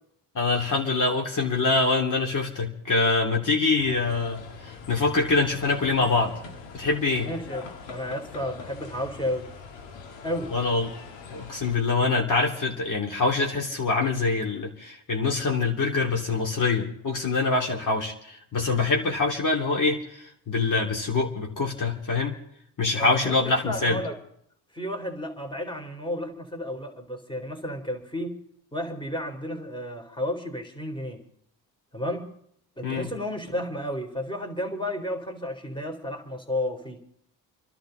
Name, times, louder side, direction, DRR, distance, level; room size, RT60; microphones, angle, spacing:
voice 1, 0.3-6.3 6.7-7.3 10.5-10.9 11.3-22.4 22.8-24.0 32.8-33.1, left 3 dB, 45° left, 0 dB, 3.0 m, -25 dB
sound 1, 3.8-11.8, left 5 dB, 75° left, 1.9 m, -43 dB
voice 2, 7.2-7.6 7.9-9.5 10.2-10.5 22.9-24.2 24.7-28.4 28.7-31.2 31.9-32.3 32.8-37.0, left 1 dB, 10° left, 4 dB, 3.3 m, -32 dB
29.5 x 11.5 x 3.9 m, 0.72 s
supercardioid pair, 65°, 45 cm